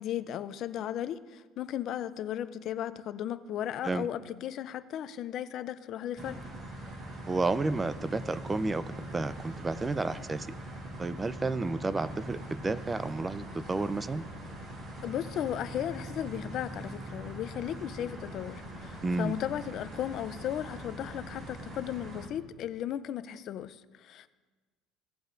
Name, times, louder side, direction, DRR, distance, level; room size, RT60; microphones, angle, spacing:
voice 1, 0.0-6.4 15.0-24.3, left 10 dB, 55° left, 0.4 m, -36 dB
sound 1, 6.2-22.3, right 1 dB, 50° right, 2.1 m, -42 dB
voice 2, 7.3-8.8 9.1-10.5 11.0-14.2 19.0-19.3, right 3 dB, 20° right, 0.4 m, -31 dB
17.5 x 7.9 x 2.5 m
cardioid pair, 120°, 0 cm